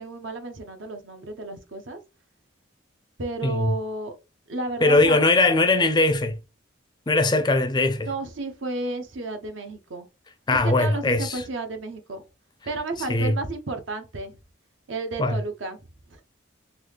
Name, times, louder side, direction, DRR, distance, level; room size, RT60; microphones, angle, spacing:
voice 1, 0.0-2.0 3.2-4.1 4.5-5.2 8.0-10.1 10.5-12.2 12.7-14.4 14.9-15.8 16.1-16.2, right 2 dB, 75° right, 0.8 m, -32 dB
voice 2, 3.4-3.8 4.8-6.4 7.1-8.1 10.5-11.4 13.1-13.4 15.2-15.4, left 2 dB, 20° left, 0.4 m, -20 dB
3.8 x 2.3 x 3.2 m
head